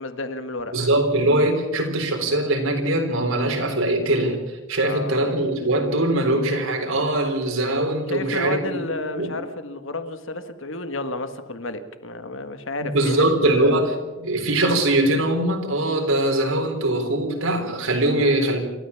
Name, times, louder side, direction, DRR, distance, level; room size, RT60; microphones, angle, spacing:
voice 1, 0.0-0.9 4.8-5.2 8.1-13.8, left 2 dB, 65° left, 1.7 m, -31 dB
voice 2, 0.7-8.8 9.2-9.3 12.8-13.9 14.2-18.6, right 1 dB, 80° right, 4.1 m, -22 dB
28.0 x 13.5 x 7.1 m
head